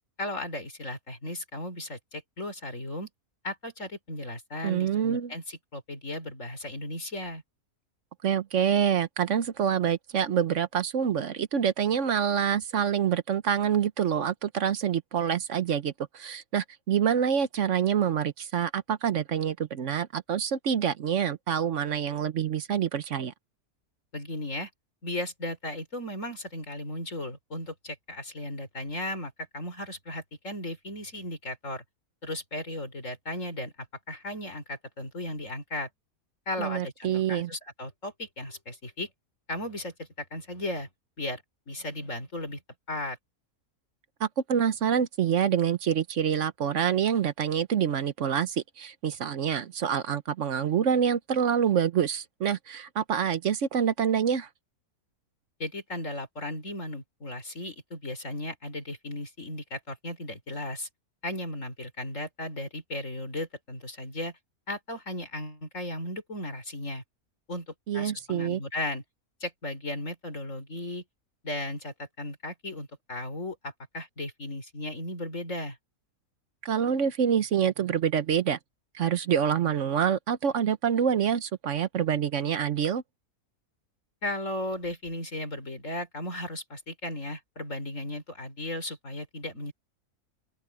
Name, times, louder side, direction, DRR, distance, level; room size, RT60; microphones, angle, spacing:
voice 1, 0.2-3.1 3.4-7.4 24.1-24.7 25.0-31.8 32.2-33.7 34.1-35.9 36.5-39.1 39.5-40.9 41.2-42.6 42.9-43.2 55.6-60.9 61.2-64.4 64.7-67.0 67.5-69.0 69.4-71.0 71.4-75.8 84.2-89.7, left 1 dB, 55° left, 5.2 m, -36 dB
voice 2, 4.6-5.3 8.2-23.3 36.6-37.5 44.2-54.5 67.9-68.6 76.6-78.6 78.9-83.0, right 8 dB, 60° right, 1.1 m, -26 dB
open air
omnidirectional pair, 1.6 m